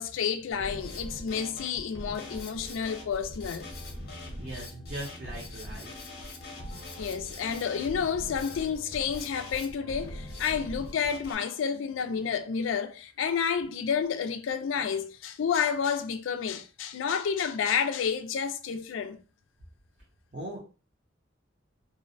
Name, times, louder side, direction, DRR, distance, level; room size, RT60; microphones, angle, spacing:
voice 1, 0.0-3.7 7.0-19.2, left 7 dB, 85° left, 0.4 m, -30 dB
Drum kit, 0.5-11.3, left 1 dB, 55° left, 0.7 m, -41 dB
voice 2, 4.4-5.9 20.3-20.6, right 1 dB, 45° right, 0.6 m, -39 dB
2.5 x 2.0 x 2.5 m
head